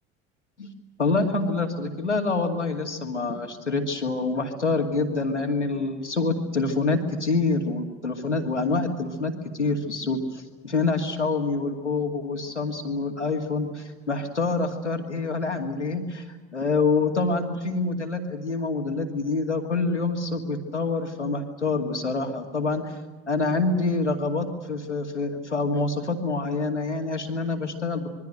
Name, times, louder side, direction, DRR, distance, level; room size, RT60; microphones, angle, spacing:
voice 1, 1.0-22.9 23.3-28.1, left 3 dB, 85° left, 4 dB, 2.4 m, -26 dB
26.5 x 23.0 x 6.6 m, 1.3 s
figure-of-eight pair, 65°, 34 cm